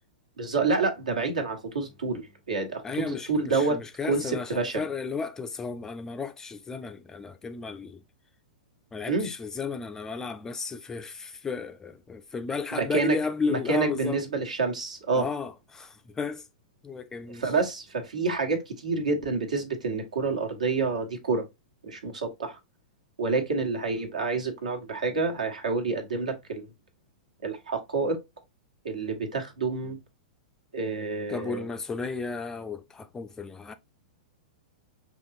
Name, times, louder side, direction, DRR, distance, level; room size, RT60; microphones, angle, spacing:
voice 1, 0.4-3.8 4.0-4.8 9.1-9.3 12.7-13.2 13.5-15.3 17.4-21.4 21.8-22.6 23.2-26.7 27.4-28.2 28.8-30.0 30.7-31.6, right 4 dB, 70° right, 1.3 m, -28 dB
voice 2, 2.8-8.0 8.9-14.2 15.1-16.5 16.8-17.5 31.3-33.7, left 5 dB, 15° left, 0.4 m, -33 dB
5.7 x 3.0 x 2.5 m
figure-of-eight pair, 100°, 4 cm